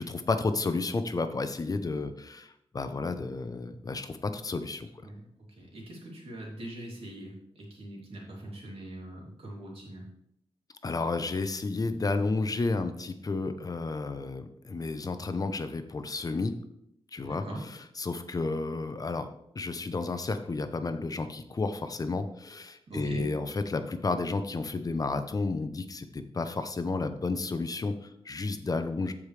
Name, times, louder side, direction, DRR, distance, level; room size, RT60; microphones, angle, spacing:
voice 1, 0.0-4.9 10.8-16.5 17.1-19.3 19.5-29.1, left 3 dB, 35° left, 9 dB, 0.7 m, -32 dB
voice 2, 5.6-10.0 17.2-17.6 22.9-23.3, right 1 dB, 70° right, -3 dB, 2.8 m, -42 dB
14.5 x 5.0 x 3.3 m, 0.75 s
wide cardioid pair, 125°, 10 cm